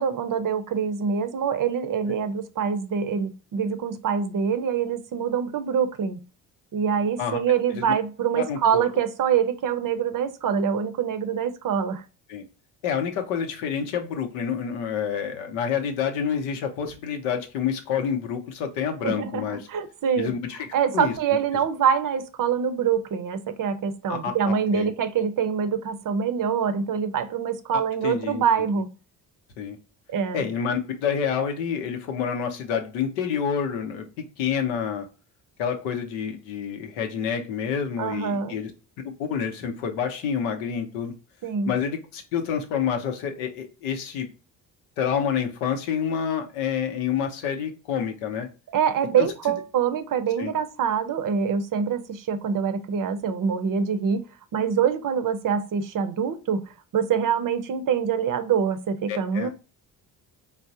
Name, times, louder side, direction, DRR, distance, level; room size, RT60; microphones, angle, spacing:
voice 1, 0.0-6.2 6.7-12.0 19.0-19.4 19.7-20.3 20.7-28.9 30.1-30.4 38.0-38.6 41.4-41.7 48.7-54.2 54.5-56.6 56.9-59.5, right 7 dB, 45° right, 0.6 m, -25 dB
voice 2, 8.3-8.8 12.3-12.4 12.8-19.7 20.2-20.6 20.9-21.1 24.1-24.3 24.7-24.9 27.7-28.7 29.6-29.8 30.3-35.1 35.6-38.7 39.0-41.1 41.7-44.3 45.0-48.5 49.2-49.3 50.4-50.5 59.1-59.5, left 7 dB, 90° left, 0.7 m, -28 dB
3.7 x 2.0 x 2.6 m
supercardioid pair, 55°, 45 cm